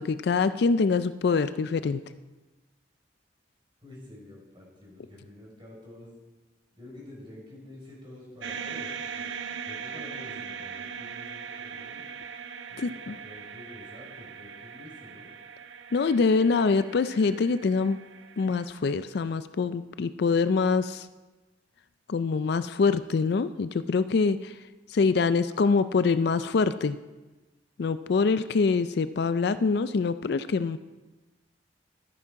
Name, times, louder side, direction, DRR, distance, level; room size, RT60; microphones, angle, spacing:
voice 1, 0.0-2.0 12.8-13.2 15.9-18.0 18.4-21.1 22.1-24.5 24.9-27.0 27.8-30.8, left 4 dB, 60° left, 13 dB, 0.4 m, -25 dB
voice 2, 3.8-6.1 6.7-8.9 9.2-12.1 12.7-15.3, left 1 dB, 25° right, -3 dB, 4.7 m, -48 dB
sound 1, 8.4-18.6, right 6 dB, 90° right, 0.8 m, -40 dB
13.0 x 9.6 x 4.7 m, 1.2 s
head